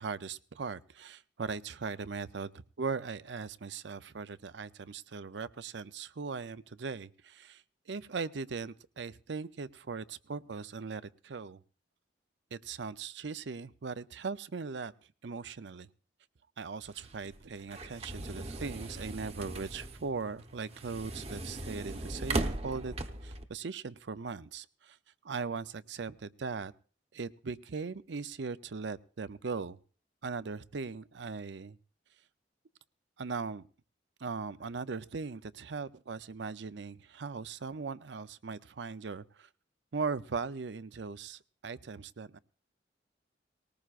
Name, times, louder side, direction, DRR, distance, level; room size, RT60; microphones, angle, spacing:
voice 1, 0.0-11.6 12.5-14.9 15.2-15.9 16.6-22.9 23.2-25.0 25.2-26.7 27.1-29.8 30.2-31.8 33.2-33.7 34.2-39.5 39.9-42.4, right 4 dB, 70° right, 15 dB, 0.6 m, -39 dB
sound 1, 16.9-23.4, right 2 dB, 35° right, 0.9 m, -39 dB
19.5 x 18.5 x 2.5 m, 0.40 s
head